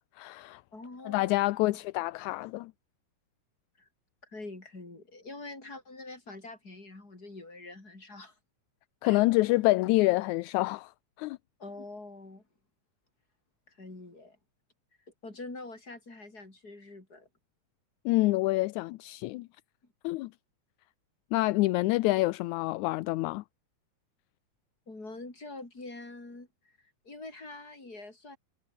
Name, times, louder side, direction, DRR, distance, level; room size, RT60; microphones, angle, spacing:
voice 1, 0.2-0.6 1.1-2.7 9.0-10.9 11.2-11.4 18.1-19.5 20.0-20.3 21.3-23.4, left 20 dB, 80° left, 2.0 m, -27 dB
voice 2, 0.7-1.3 1.7-1.8 3.8-3.9 4.3-8.3 9.0-9.2 11.6-12.4 13.7-14.4 15.2-17.3 24.9-26.8 27.0-28.4, left 2 dB, 30° left, 6.5 m, -45 dB
omnidirectional pair, 3.4 m